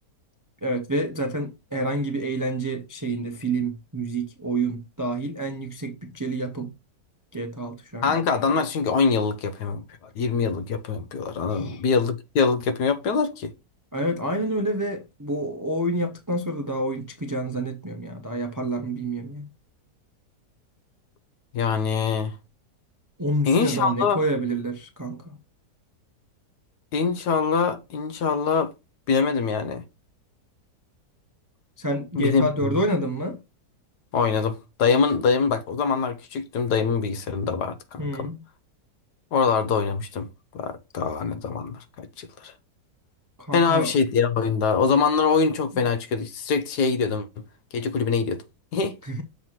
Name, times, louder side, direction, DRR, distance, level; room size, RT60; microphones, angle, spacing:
voice 1, 0.6-6.7 7.3-8.2 11.5-11.8 13.9-19.5 23.2-25.4 31.8-33.4 38.0-38.4 43.4-43.9 45.7-45.8 49.0-49.2, right 1 dB, 30° right, 0.3 m, -28 dB
voice 2, 8.0-9.8 10.2-13.5 21.5-22.3 23.5-24.2 26.9-28.7 29.1-29.8 32.2-32.7 34.1-38.3 39.3-40.3 40.5-42.5 43.5-47.3 47.7-48.4 48.7-48.9, left 5 dB, 75° left, 1.4 m, -24 dB
7.0 x 3.0 x 5.7 m
omnidirectional pair, 1.8 m